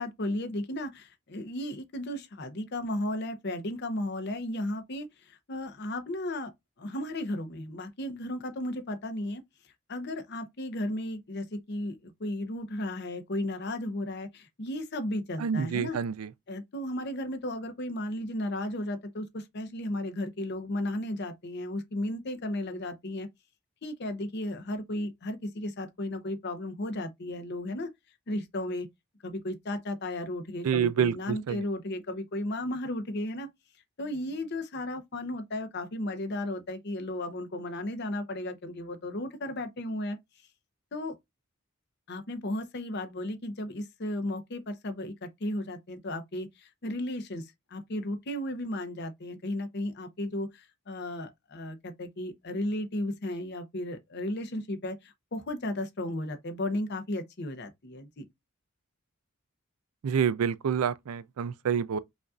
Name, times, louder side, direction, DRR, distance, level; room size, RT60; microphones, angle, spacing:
voice 1, 0.0-6.5 6.8-9.4 9.9-16.0 16.5-23.3 23.8-27.9 28.3-28.9 29.2-33.5 34.0-40.2 40.9-41.1 42.1-58.2, left 1 dB, 50° left, 0.7 m, -34 dB
voice 2, 15.4-16.3 30.6-31.6 60.0-62.0, right 7 dB, 85° right, 0.4 m, -28 dB
5.1 x 2.6 x 2.3 m
head